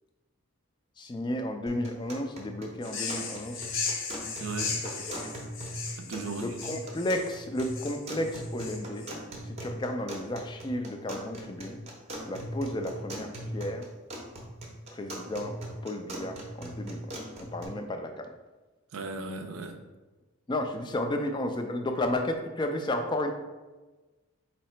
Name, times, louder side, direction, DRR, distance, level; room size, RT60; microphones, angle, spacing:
voice 1, 1.0-3.7 5.1-5.3 6.3-9.1 9.4-11.8 12.2-13.9 14.9-18.3 20.5-23.3, left 1 dB, 20° left, 5 dB, 0.3 m, -33 dB
sound 1, 1.7-17.7, equal, 30° right, 0.6 m, -40 dB
sound 2, 2.8-9.1, left 5 dB, 60° left, 0.7 m, -36 dB
voice 2, 4.4-4.8 6.0-6.8 18.9-19.8, right 3 dB, 70° right, 6 dB, 0.5 m, -37 dB
4.2 x 2.8 x 4.3 m, 1.2 s
head